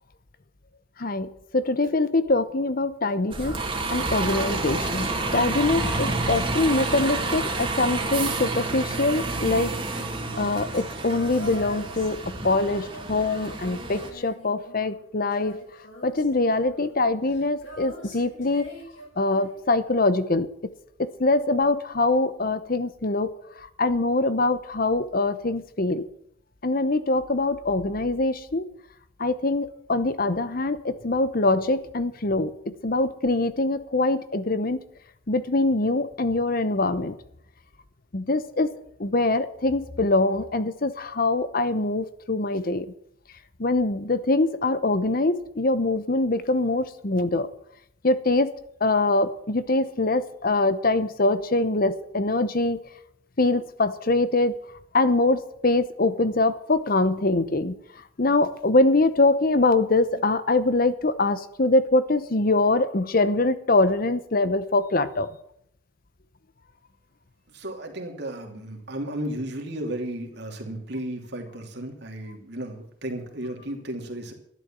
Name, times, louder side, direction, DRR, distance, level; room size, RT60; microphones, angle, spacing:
voice 1, 1.0-1.3 1.5-3.6 3.9-9.7 10.4-12.2 12.4-15.6 16.0-18.7 19.2-20.5 21.0-23.3 23.8-26.0 26.6-28.6 29.2-34.8 35.3-37.1 38.1-38.7 39.0-42.9 43.6-47.5 48.0-48.5 48.8-52.8 53.4-54.5 54.9-57.8 58.2-65.3, left 2 dB, 45° left, 13 dB, 0.9 m, -23 dB
Bus, 3.3-14.1, right 3 dB, 25° right, 2.3 m, -29 dB
Female singing, 4.7-20.1 21.6-21.7, left 1 dB, 65° left, 7.8 m, -45 dB
voice 2, 67.5-74.3, right 1 dB, 55° right, 3 dB, 2.9 m, -34 dB
12.5 x 11.5 x 7.5 m, 0.69 s
head